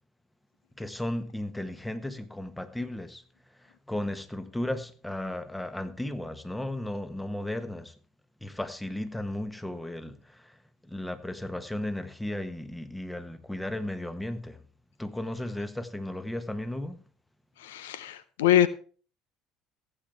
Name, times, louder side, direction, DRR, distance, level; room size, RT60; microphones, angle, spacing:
voice 1, 0.8-3.2 3.9-7.9 8.4-14.6 15.0-17.0, left 1 dB, 5° left, 1.3 m, -35 dB
voice 2, 17.6-18.7, left 11 dB, 80° left, 0.6 m, -24 dB
15.5 x 9.1 x 3.5 m
hypercardioid pair, 65°, 0 cm